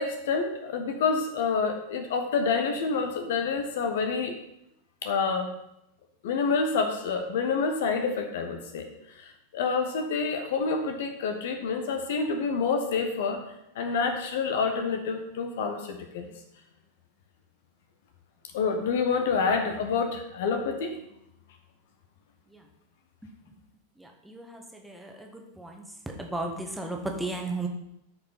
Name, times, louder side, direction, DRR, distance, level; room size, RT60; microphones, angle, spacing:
voice 1, 0.0-4.4 5.0-5.5 6.2-8.9 9.2-13.4 13.7-16.3 18.5-21.0, left 5 dB, 55° left, 6 dB, 1.2 m, -28 dB
voice 2, 24.2-25.8 26.2-27.7, right 2 dB, 5° right, 1 dB, 1.5 m, -34 dB
14.0 x 5.4 x 4.1 m, 0.80 s
figure-of-eight pair, 90°, 0 cm